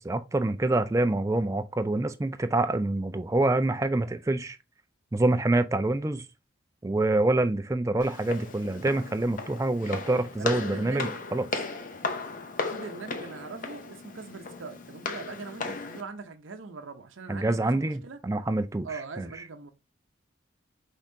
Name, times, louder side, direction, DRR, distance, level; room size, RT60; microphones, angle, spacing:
voice 1, 0.0-4.6 5.1-6.3 6.8-11.5 17.3-19.3, right 2 dB, 15° right, 0.3 m, -26 dB
Walk footsteps, 8.0-16.0, left 3 dB, 40° left, 0.6 m, -36 dB
voice 2, 10.0-11.3 12.7-18.2 18.8-19.7, right 4 dB, 70° right, 0.7 m, -42 dB
5.4 x 3.6 x 2.6 m
head